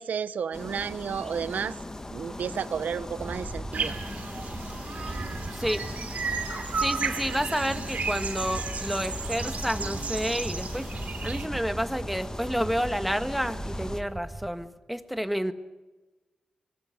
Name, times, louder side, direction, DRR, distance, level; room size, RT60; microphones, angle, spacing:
voice 1, 0.0-1.8 2.1-4.0, right 7 dB, 85° right, 14 dB, 1.1 m, -32 dB
sound 1, 0.5-14.0, left 2 dB, 20° left, 1.7 m, -40 dB
Wind, 3.2-14.5, right 2 dB, 25° right, 5.5 m, -39 dB
sound 2, 3.7-11.5, right 5 dB, 65° right, 2.9 m, -34 dB
voice 2, 5.5-5.8 6.8-10.9 11.2-15.5, equal, ahead, 9 dB, 1.7 m, -30 dB
24.5 x 20.0 x 8.1 m, 1.2 s
cardioid pair, 70°, 3 cm